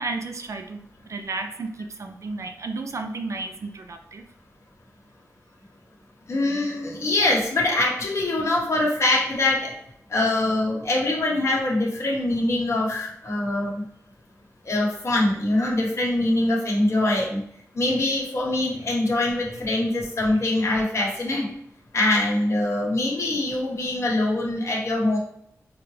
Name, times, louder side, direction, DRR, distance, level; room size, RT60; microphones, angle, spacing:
voice 1, 0.0-4.2 17.9-18.0 18.8-18.9 19.5-19.7 20.3-20.4, right 3 dB, 60° right, 5 dB, 0.4 m, -33 dB
voice 2, 6.3-9.7 10.1-13.8 14.7-17.4 17.7-21.5 21.9-25.2, left 2 dB, 55° left, -3 dB, 1.0 m, -23 dB
4.7 x 2.0 x 3.1 m, 0.71 s
wide cardioid pair, 95°, 6 cm